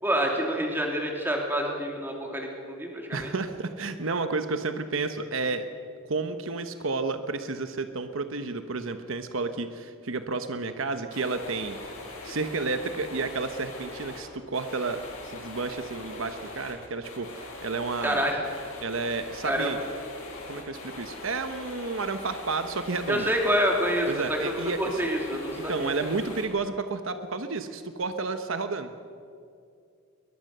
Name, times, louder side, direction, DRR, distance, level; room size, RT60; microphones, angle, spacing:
voice 1, 0.0-3.3 18.0-18.4 19.4-19.7 23.1-25.9, equal, 10° right, 0 dB, 3.1 m, -27 dB
voice 2, 3.1-5.7 6.1-11.8 12.2-18.2 18.8-19.8 20.5-23.3 24.1-25.0 25.7-28.9, right 3 dB, 70° right, 9 dB, 1.0 m, -31 dB
sound 1, 11.1-14.2 14.5-26.5, left 2 dB, 85° left, 7.8 m, -42 dB
21.5 x 21.5 x 6.7 m, 2.4 s
head